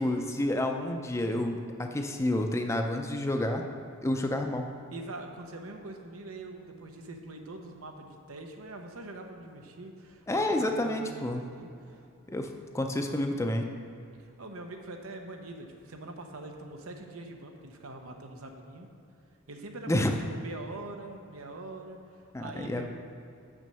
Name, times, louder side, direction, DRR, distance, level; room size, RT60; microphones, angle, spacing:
voice 1, 0.0-3.6 4.0-4.7 10.3-11.4 12.3-12.5 12.7-13.7 19.9-20.1 22.3-22.9, left 1 dB, 15° left, 4 dB, 0.5 m, -29 dB
voice 2, 4.9-12.0 14.2-18.9 19.5-22.0 22.4-22.9, right 2 dB, 90° right, 3 dB, 0.9 m, -43 dB
6.4 x 6.2 x 6.8 m, 2.5 s
head